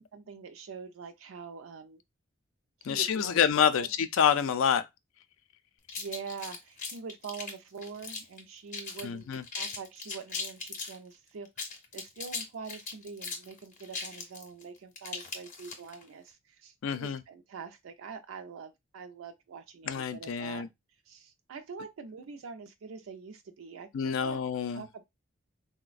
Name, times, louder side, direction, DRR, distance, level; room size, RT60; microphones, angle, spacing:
voice 1, 0.0-2.0 2.8-3.9 6.0-9.3 9.5-20.7 21.1-24.4 24.7-25.0, right 5 dB, 75° right, 0.4 m, -44 dB
voice 2, 2.8-4.8 9.0-9.4 16.8-17.2 19.9-20.7 23.9-24.8, left 8 dB, 70° left, 0.4 m, -27 dB
sound 1, 5.9-8.4 8.7-9.1 9.3-11.0 11.5-16.0, left 4 dB, 35° left, 0.7 m, -38 dB
3.9 x 2.1 x 2.4 m
head